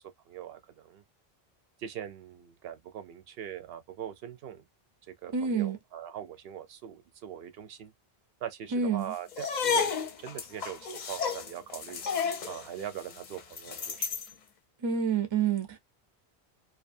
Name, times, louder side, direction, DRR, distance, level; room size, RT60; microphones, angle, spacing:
voice 1, 0.3-1.0 1.8-4.6 5.1-7.9 8.4-9.9 10.2-12.0 12.5-14.1, right 10 dB, 75° right, 0.8 m, -41 dB
voice 2, 5.3-5.8 8.7-9.1 14.8-15.8, right 6 dB, 35° right, 0.5 m, -28 dB
sound 1, 9.3-14.3, left 6 dB, 55° left, 0.6 m, -32 dB
2.5 x 2.3 x 2.5 m
omnidirectional pair, 1.0 m